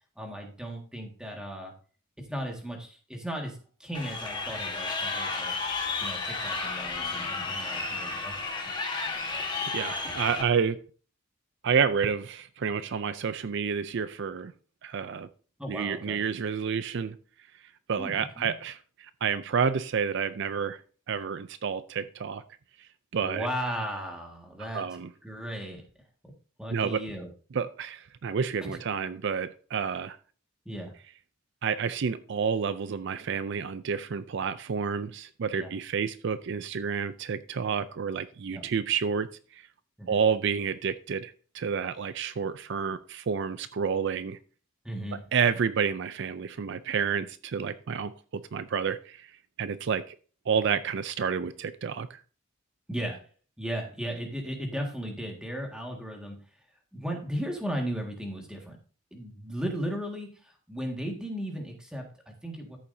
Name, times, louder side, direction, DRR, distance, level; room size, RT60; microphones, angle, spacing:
voice 1, 0.2-1.7 2.3-5.5 6.0-8.3 8.6-8.8 15.6-16.2 18.0-18.5 23.2-25.0 25.2-25.8 26.6-27.3 28.6-28.8 30.7-30.9 35.6-35.7 38.5-38.6 40.0-40.2 44.8-45.2 52.9-53.3 53.6-56.4 56.9-58.8 59.1-62.8, equal, 5° right, 1.8 m, -36 dB
Crowd, 3.9-10.4, left 4 dB, 20° left, 1.4 m, -32 dB
voice 2, 9.7-10.8 11.6-14.5 14.8-15.3 15.7-17.2 17.9-20.8 21.1-22.4 23.1-23.5 24.7-25.1 26.7-27.0 27.5-30.2 31.6-39.6 40.1-44.4 45.3-49.3 49.6-50.2 50.5-52.2, right 6 dB, 55° right, 0.4 m, -29 dB
13.5 x 7.1 x 2.7 m
head